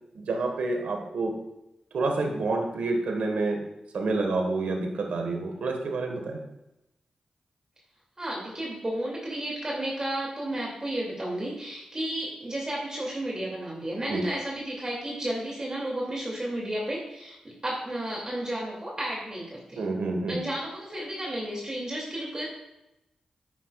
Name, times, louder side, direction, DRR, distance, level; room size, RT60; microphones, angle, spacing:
voice 1, 0.1-1.3 1.9-3.6 3.9-6.4 14.1-14.2 19.7-20.4, right 3 dB, 90° right, 3 dB, 1.5 m, -28 dB
voice 2, 8.2-19.8 20.3-22.5, right 1 dB, 30° right, -3 dB, 2.6 m, -32 dB
10.0 x 9.3 x 2.4 m, 0.92 s
cardioid pair, 60°, 2 cm